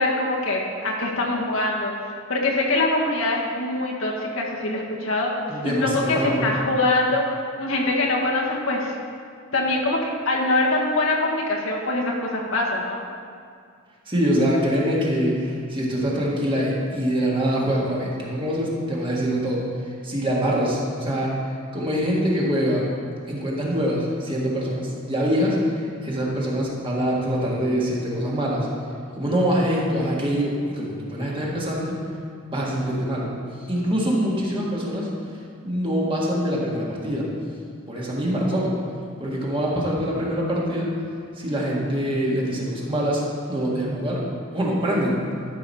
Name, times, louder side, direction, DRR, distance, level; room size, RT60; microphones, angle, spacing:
voice 1, 0.0-1.9 2.3-5.3 5.6-7.3 7.5-8.9 9.5-13.0, left 2 dB, 85° left, -2 dB, 1.6 m, -23 dB
voice 2, 5.5-6.4 14.1-19.6 20.0-21.4 21.7-22.9 23.3-28.7 29.2-32.0 32.5-33.3 33.7-35.1 35.6-37.3 37.9-38.8 39.2-40.9 41.4-44.2 44.5-45.2, equal, 25° right, -4 dB, 1.7 m, -24 dB
12.5 x 6.0 x 4.2 m, 2.2 s
head